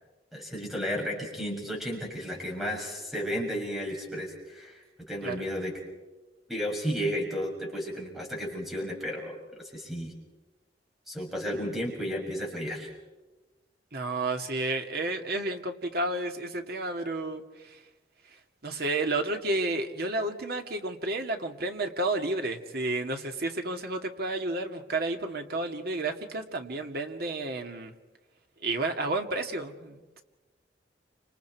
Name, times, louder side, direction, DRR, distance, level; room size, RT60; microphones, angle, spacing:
voice 1, 0.3-5.7 6.5-9.4 9.6-10.1 11.1-12.9, equal, ahead, -1 dB, 6.7 m, -33 dB
voice 2, 13.9-17.4 18.6-27.9 28.6-30.0, right 2 dB, 60° right, 4 dB, 2.2 m, -31 dB
29.0 x 27.0 x 4.7 m, 1.1 s
head